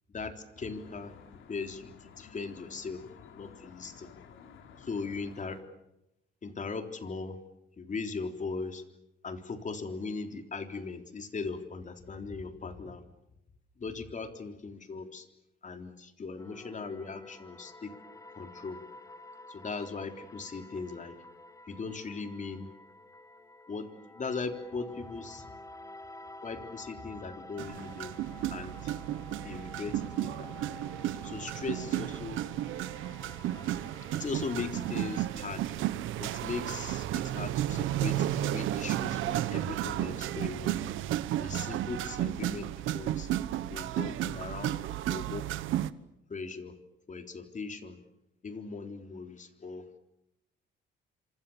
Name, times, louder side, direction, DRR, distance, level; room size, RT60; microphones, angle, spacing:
voice 1, 0.1-1.1 1.5-3.0 3.3-4.1 4.8-5.6 6.4-7.4 7.8-8.8 9.2-13.0 13.8-15.3 15.6-17.9 18.3-18.8 19.5-21.2 21.7-22.7 23.7-25.5 26.4-28.1 28.5-28.9 29.4-30.5 31.2-32.4 34.1-35.8 36.2-40.8 41.4-43.3 43.7-44.8 45.1-45.5 46.3-46.7 47.1-48.0 48.4-50.0, left 4 dB, 40° left, 6 dB, 3.7 m, -39 dB
Traffic noise roadway noise, 0.6-5.6, left 7 dB, 80° left, 3.5 m, -53 dB
sound 1, 16.4-35.2, left 2 dB, 15° left, 1.8 m, -50 dB
sound 2, 27.6-45.9, right 13 dB, 90° right, 1.1 m, -33 dB
26.5 x 26.5 x 7.3 m, 0.86 s
cardioid pair, 90°, 20 cm